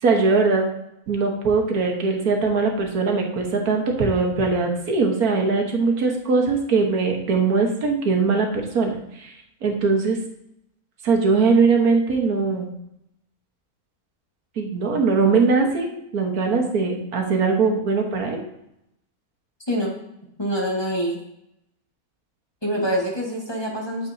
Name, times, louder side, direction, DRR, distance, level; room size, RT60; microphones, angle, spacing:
voice 1, 0.0-0.6 1.1-9.3 9.6-10.2 11.0-12.7 14.6-18.4, right 4 dB, 80° right, 2 dB, 1.8 m, -21 dB
voice 2, 20.4-21.2 22.6-24.1, equal, 20° left, -2 dB, 1.5 m, -25 dB
9.5 x 7.1 x 2.7 m, 0.82 s
omnidirectional pair, 1.6 m